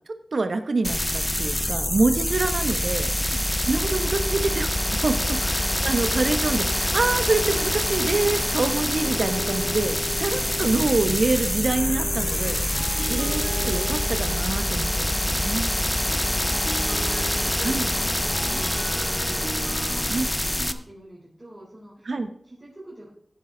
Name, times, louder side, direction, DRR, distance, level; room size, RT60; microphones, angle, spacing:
voice 1, 0.0-3.1 3.7-12.6 13.1-15.7 17.6-17.9 20.1-20.2 22.1-22.3, right 3 dB, 65° right, 8 dB, 1.0 m, -26 dB
sound 1, 0.8-20.7, left 1 dB, 15° left, 0.6 m, -25 dB
voice 2, 3.2-3.7 12.7-13.2 16.1-22.1 22.4-23.1, right 1 dB, 20° right, -6 dB, 4.0 m, -44 dB
sound 2, 9.0-14.4, left 2 dB, 55° left, 1.0 m, -36 dB
sound 3, 12.7-20.1, right 2 dB, 85° right, 3.1 m, -38 dB
16.0 x 7.6 x 3.9 m, 0.62 s
wide cardioid pair, 100°, 0 cm